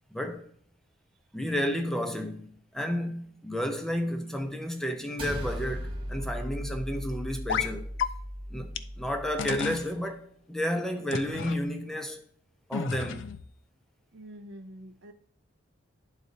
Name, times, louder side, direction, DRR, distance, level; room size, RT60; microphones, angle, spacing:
voice 1, 0.1-0.4 1.3-7.9 8.5-12.2 12.7-13.3, equal, ahead, 0.6 m, -32 dB
sound 1, 5.2-9.8, equal, 25° right, 1.0 m, -37 dB
sound 2, 7.5-7.7 8.0-8.1 8.8-8.9 9.4-9.9 11.1-11.6 12.7-13.4, left 7 dB, 65° left, 0.4 m, -31 dB
voice 2, 14.1-15.1, equal, 60° right, 0.7 m, -46 dB
11.0 x 4.0 x 2.7 m
head